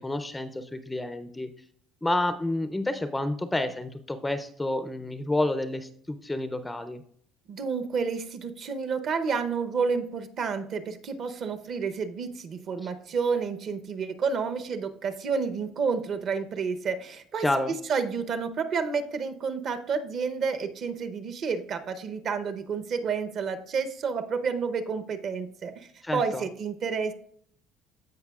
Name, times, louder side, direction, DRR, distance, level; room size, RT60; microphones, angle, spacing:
voice 1, 0.0-1.5 2.0-7.0 12.8-12.9 17.4-17.7 26.0-26.4, left 1 dB, 10° left, 10 dB, 0.4 m, -29 dB
voice 2, 7.5-17.5 17.9-27.1, right 5 dB, 45° right, 9 dB, 0.7 m, -30 dB
15.5 x 5.2 x 2.3 m, 0.63 s
cardioid pair, 135°, 0 cm